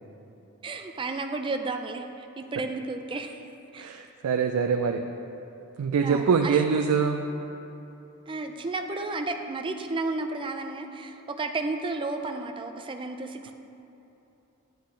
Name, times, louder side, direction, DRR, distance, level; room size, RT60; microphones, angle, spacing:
voice 1, 0.6-3.4 3.7-3.9 6.0-6.6 8.3-13.5, right 3 dB, 20° right, 5 dB, 0.4 m, -32 dB
voice 2, 3.8-5.0 5.8-7.2, right 6 dB, 90° right, 4 dB, 0.4 m, -24 dB
10.0 x 8.1 x 3.2 m, 3.0 s
head